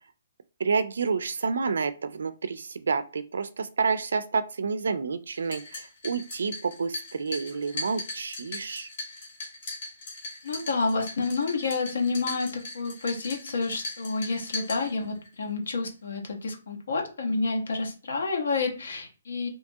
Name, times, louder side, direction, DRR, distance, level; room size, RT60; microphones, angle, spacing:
voice 1, 0.6-8.9, right 5 dB, 75° right, 12 dB, 0.3 m, -29 dB
sound 1, 5.3-15.3, left 2 dB, 35° left, 1.0 m, -39 dB
voice 2, 10.4-19.5, left 3 dB, 70° left, 2 dB, 0.8 m, -29 dB
2.8 x 2.3 x 2.7 m, 0.35 s
hypercardioid pair, 180°, 0 cm